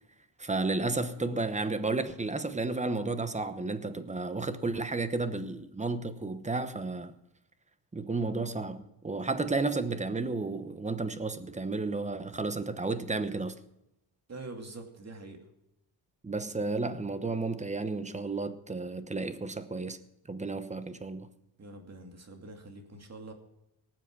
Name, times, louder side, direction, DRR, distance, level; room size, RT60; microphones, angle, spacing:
voice 1, 0.4-7.1 7.9-13.5 16.2-20.0 20.3-21.3, right 3 dB, 15° right, 1.0 m, -32 dB
voice 2, 14.3-15.4 21.6-23.3, right 2 dB, 35° right, 2.7 m, -45 dB
18.5 x 7.7 x 6.2 m
cardioid pair, 105°, 43 cm